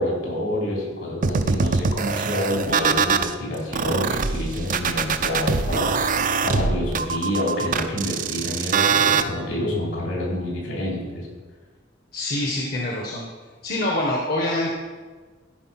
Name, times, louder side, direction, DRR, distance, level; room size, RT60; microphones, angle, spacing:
voice 1, 0.0-11.3, left 1 dB, 70° left, -3 dB, 3.5 m, -28 dB
sound 1, 1.2-3.3 3.7-9.2, right 5 dB, 45° right, 0.5 m, -22 dB
voice 2, 12.1-13.2 13.6-14.7, left 1 dB, 50° left, -2 dB, 1.3 m, -25 dB
13.5 x 5.1 x 5.9 m, 1.4 s
head